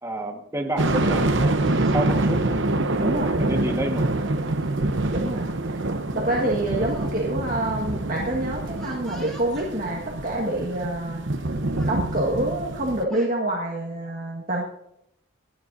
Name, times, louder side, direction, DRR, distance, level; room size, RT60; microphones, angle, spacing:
voice 1, 0.0-1.5 1.9-2.4 3.4-4.0, right 1 dB, 15° right, 2 dB, 1.6 m, -28 dB
sound 1, 0.8-13.0, right 2 dB, 60° right, 0.9 m, -26 dB
Speech, 1.6-2.2 3.1-3.4 4.6-4.7 5.1-5.3 6.3-7.1 7.4-7.5 8.8-9.7 10.6-10.7 11.1-11.4 11.7-12.0 12.8-13.3, right 1 dB, ahead, 3.2 m, -47 dB
voice 2, 3.0-3.7 5.1-5.9 6.1-11.2 11.8-14.7, right 1 dB, 45° right, -3 dB, 1.7 m, -27 dB
26.5 x 9.9 x 2.7 m, 0.78 s
head